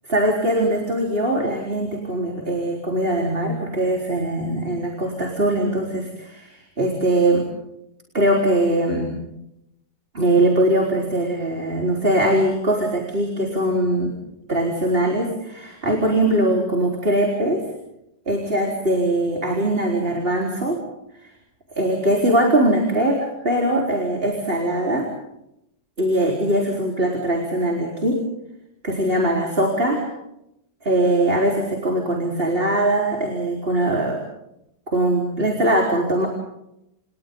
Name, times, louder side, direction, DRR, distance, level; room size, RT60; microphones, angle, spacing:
voice 1, 0.1-7.5 8.1-9.2 10.1-14.1 14.5-17.6 18.3-20.8 21.2-21.3 21.7-25.1 26.0-28.2 28.8-30.1 30.8-34.2 34.9-36.3, right 1 dB, 35° right, 0 dB, 4.4 m, -21 dB
30.0 x 29.5 x 3.9 m, 0.82 s
omnidirectional pair, 1.7 m